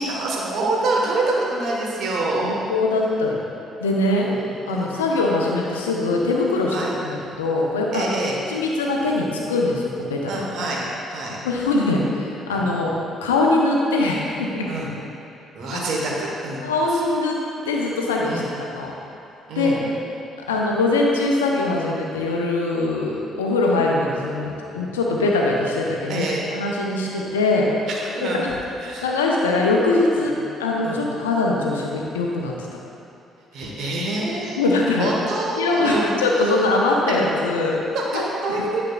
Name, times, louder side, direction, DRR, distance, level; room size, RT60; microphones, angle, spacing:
voice 1, 0.0-2.6 4.3-4.9 6.7-6.9 7.9-8.4 10.2-10.8 11.1-11.4 12.5-12.6 14.7-14.9 15.5-16.6 16.9-17.0 18.2-18.5 19.5-19.8 26.1-26.4 28.1-28.5 28.8-29.3 30.2-30.3 30.8-31.0 33.5-36.1 36.3-36.5 37.9-38.8, right 2 dB, 60° right, -3 dB, 1.2 m, -26 dB
voice 2, 2.4-3.5 3.8-4.3 4.7-8.0 8.5-10.3 11.4-12.9 13.2-14.7 15.7-15.9 16.6-17.4 17.6-18.9 19.5-19.8 20.5-26.2 26.5-27.7 28.2-28.5 29.0-30.3 30.6-32.5 34.6-35.1 35.6-37.8 38.1-38.6, left 2 dB, 85° left, -1 dB, 0.6 m, -22 dB
9.5 x 6.0 x 2.4 m, 2.8 s
hypercardioid pair, 45°, 0 cm